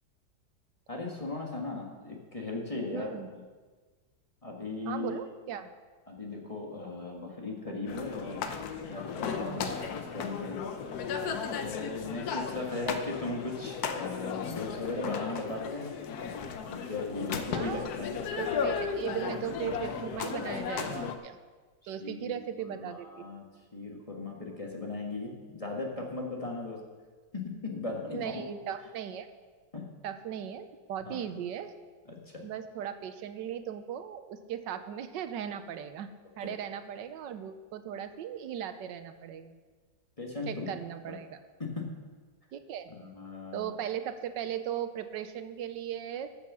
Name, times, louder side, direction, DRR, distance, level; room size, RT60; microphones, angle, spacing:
voice 1, 0.9-3.4 4.4-5.2 6.1-8.5 8.8-10.6 11.5-15.9 16.7-18.2 21.8-22.3 22.8-23.5 23.7-26.8 27.3-28.3 29.7-29.9 31.0-31.2 32.1-32.4 36.4-36.5 40.2-40.7 41.1-41.2 41.6-41.9 42.9-43.8, left 3 dB, 20° left, -1 dB, 1.5 m, -37 dB
voice 2, 2.9-3.3 4.8-5.7 9.3-9.7 12.6-12.9 17.5-17.9 18.4-21.4 21.9-23.1 28.1-29.3 30.0-31.7 32.4-36.1 36.4-39.6 40.5-41.4 42.5-42.9 43.5-46.3, right 9 dB, 85° right, 10 dB, 1.4 m, -37 dB
sound 1, 7.9-21.1, left 6 dB, 65° left, 1.2 m, -35 dB
14.0 x 7.2 x 6.2 m, 1.4 s
omnidirectional pair, 1.9 m